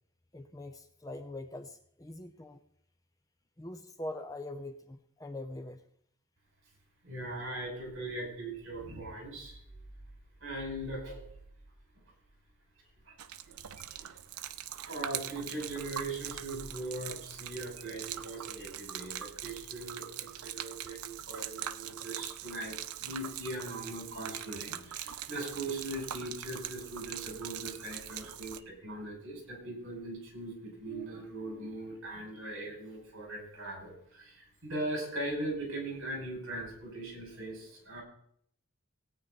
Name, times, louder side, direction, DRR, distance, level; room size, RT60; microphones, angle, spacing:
voice 1, 0.3-2.6 3.6-5.8, left 1 dB, 15° left, 7 dB, 0.6 m, -43 dB
voice 2, 7.0-9.6 10.4-11.3 13.1-13.2 13.4-38.0, right 1 dB, 60° right, 0 dB, 5.6 m, -40 dB
Gurgling / Liquid, 13.2-28.6, right 11 dB, 85° right, 0.6 m, -42 dB
17.5 x 9.0 x 4.1 m, 0.66 s
head